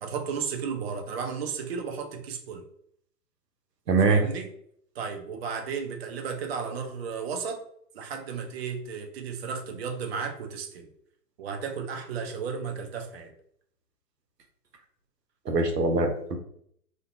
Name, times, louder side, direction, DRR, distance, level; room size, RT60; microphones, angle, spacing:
voice 1, 0.0-2.6 4.0-4.5 5.0-7.6 7.9-10.9 11.4-13.3, right 6 dB, 45° right, 4 dB, 0.4 m, -34 dB
voice 2, 3.9-4.2 15.5-16.4, right 3 dB, 85° right, 5 dB, 0.6 m, -23 dB
2.5 x 2.1 x 2.5 m, 0.66 s
figure-of-eight pair, 110°, 48 cm